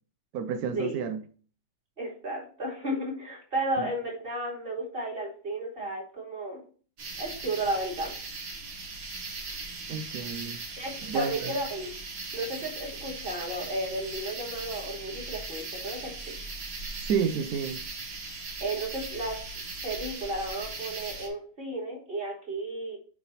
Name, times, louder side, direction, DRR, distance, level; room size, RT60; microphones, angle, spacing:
voice 1, 0.3-1.2 3.8-3.9 9.9-10.6 11.1-11.5 17.0-17.8, right 6 dB, 80° right, 0.8 m, -30 dB
voice 2, 2.0-6.6 7.2-8.1 10.8-11.9 12.3-16.3 18.6-19.4 19.8-23.0, right 1 dB, 25° right, 3.0 m, -33 dB
sound 1, 7.0-21.3, right 3 dB, 65° right, 2.7 m, -39 dB
8.2 x 3.6 x 5.6 m
omnidirectional pair, 2.3 m